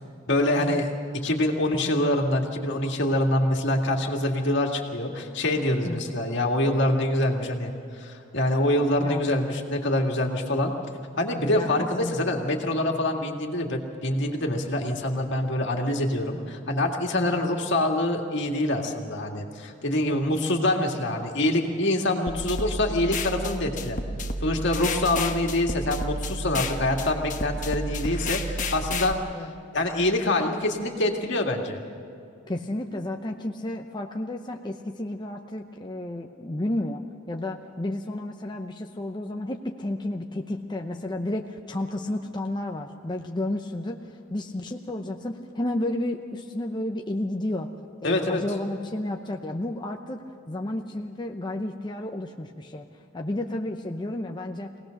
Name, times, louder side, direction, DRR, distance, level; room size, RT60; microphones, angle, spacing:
voice 1, 0.3-0.9 1.1-7.7 8.0-10.7 11.2-24.0 24.4-29.2 29.7-31.8 48.0-48.4, left 1 dB, 65° left, 2 dB, 2.2 m, -25 dB
voice 2, 9.0-9.4 11.5-12.4 17.2-17.5 29.3-29.5 32.5-37.0 37.3-47.7 48.0-50.2 50.5-52.9 53.1-54.7, left 1 dB, 25° left, 2 dB, 0.7 m, -32 dB
sound 1, 22.3-29.1, left 1 dB, 40° left, 1.3 m, -31 dB
24.0 x 18.0 x 6.5 m, 2.5 s
head